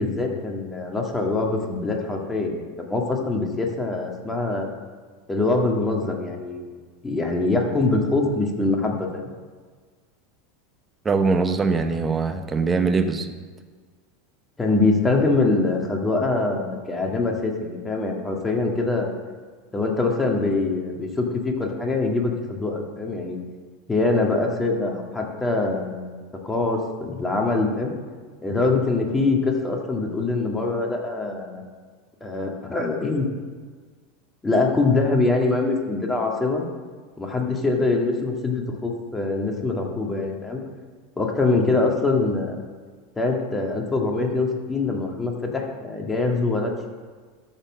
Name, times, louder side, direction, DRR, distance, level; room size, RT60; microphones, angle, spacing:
voice 1, 0.0-4.7 5.3-6.8 7.0-9.3 14.6-19.1 19.7-23.4 23.9-26.2 26.4-27.9 28.4-31.6 32.2-33.3 34.4-36.6 37.2-40.6 41.2-42.6 43.2-46.9, left 3 dB, 15° left, 1 dB, 2.0 m, -24 dB
voice 2, 11.0-13.3, right 4 dB, 20° right, 8 dB, 1.0 m, -22 dB
13.0 x 4.4 x 6.3 m, 1.5 s
hypercardioid pair, 95°, 0 cm